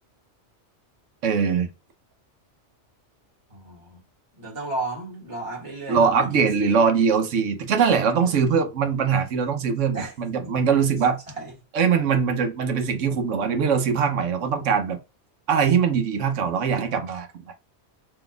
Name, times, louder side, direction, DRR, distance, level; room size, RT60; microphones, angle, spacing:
voice 1, 1.2-1.7 5.9-11.2 11.7-15.0 15.5-17.3, right 6 dB, 90° right, 1.1 m, -22 dB
voice 2, 3.5-4.0 4.4-6.8 7.8-8.4 9.9-10.1 10.5-10.6 11.3-11.5, right 2 dB, 25° right, 1.6 m, -34 dB
4.0 x 2.9 x 3.3 m
omnidirectional pair, 1.2 m